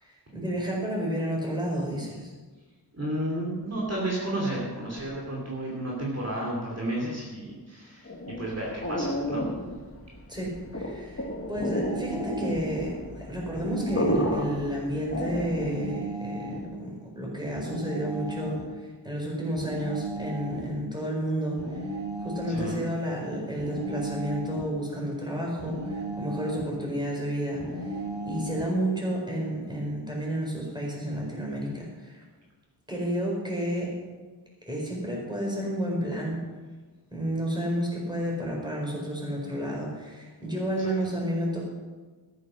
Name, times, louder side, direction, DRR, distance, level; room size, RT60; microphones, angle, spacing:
voice 1, 0.0-2.3 10.3-21.8 22.2-32.2 32.9-33.9 34.7-36.4 37.1-41.7, right 1 dB, 10° right, -2 dB, 5.0 m, -31 dB
voice 2, 2.9-9.5 22.5-22.8 40.8-40.9, right 1 dB, 35° right, -4 dB, 3.0 m, -32 dB
sound 1, 8.0-15.9, equal, 30° left, 1.9 m, -32 dB
sound 2, 11.5-12.7 13.5-14.7 15.6-16.7 17.6-18.7 19.6-20.7 21.6-22.7 23.6-24.7 25.6-26.7 27.6-28.7, equal, 80° right, 3.1 m, -35 dB
13.5 x 10.0 x 6.3 m, 1.4 s
wide cardioid pair, 80°, 41 cm